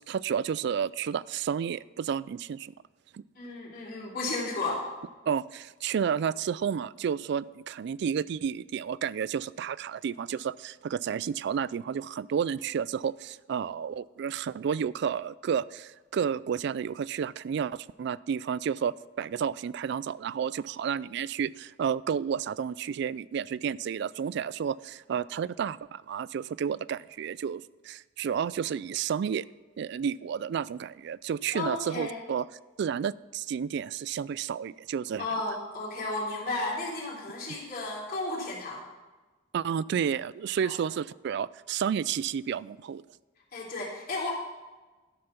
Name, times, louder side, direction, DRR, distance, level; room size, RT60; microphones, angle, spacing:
voice 1, 0.1-2.7 3.1-3.2 5.3-29.5 29.8-32.5 32.8-35.3 39.5-43.0, right 7 dB, 65° right, 20 dB, 0.3 m, -31 dB
voice 2, 3.4-4.8 31.5-32.2 35.2-38.8 40.6-40.7 43.5-44.3, left 2 dB, 50° left, -4 dB, 3.3 m, -33 dB
12.5 x 6.8 x 5.8 m, 1.2 s
head